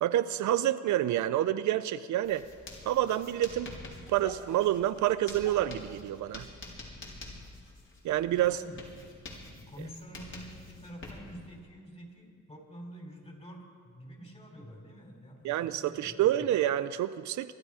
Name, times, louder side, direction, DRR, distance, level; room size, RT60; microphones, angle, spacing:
voice 1, 0.0-2.4 2.9-3.7 4.1-6.5 8.0-8.6 15.4-17.5, right 12 dB, 70° right, 13 dB, 0.6 m, -28 dB
Writing, 2.2-11.6, left 2 dB, 40° left, 3.7 m, -47 dB
voice 2, 8.3-8.8 9.5-16.5, equal, 20° left, 2 dB, 3.7 m, -48 dB
24.0 x 11.5 x 5.0 m, 2.1 s
cardioid pair, 90°, 30 cm